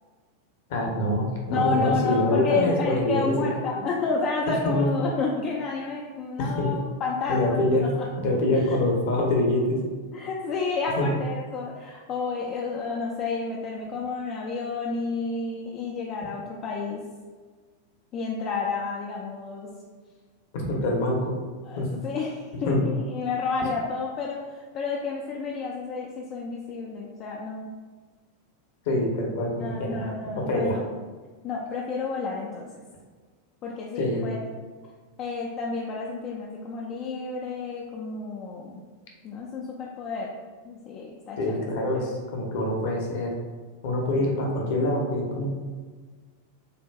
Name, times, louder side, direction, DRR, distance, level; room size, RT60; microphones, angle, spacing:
voice 1, 0.7-3.5 4.7-4.9 6.4-6.7 7.3-7.9 8.2-9.8 11.0-11.1 20.5-21.3 21.8-21.9 22.7-22.8 28.9-30.8 34.0-34.2 41.4-43.4 43.8-45.5, left 1 dB, 50° left, 0 dB, 0.9 m, -25 dB
voice 2, 1.5-8.1 8.5-8.8 10.1-17.0 18.1-19.7 21.6-27.7 29.6-30.8 31.4-32.8 33.6-34.4 35.2-38.8 39.2-40.3 40.6-41.6, left 4 dB, 35° left, -2 dB, 0.5 m, -30 dB
6.6 x 2.6 x 2.3 m, 1.5 s
figure-of-eight pair, 90°, 0 cm